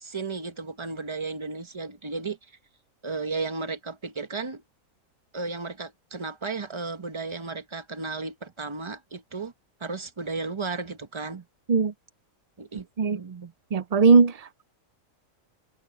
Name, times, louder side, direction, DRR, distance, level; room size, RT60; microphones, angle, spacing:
voice 1, 0.0-2.4 3.0-4.6 5.3-9.5 9.8-11.4 12.6-13.5, right 4 dB, 25° right, 0.9 m, -34 dB
voice 2, 13.7-14.6, right 4 dB, 70° right, 0.3 m, -19 dB
omnidirectional pair, 1.4 m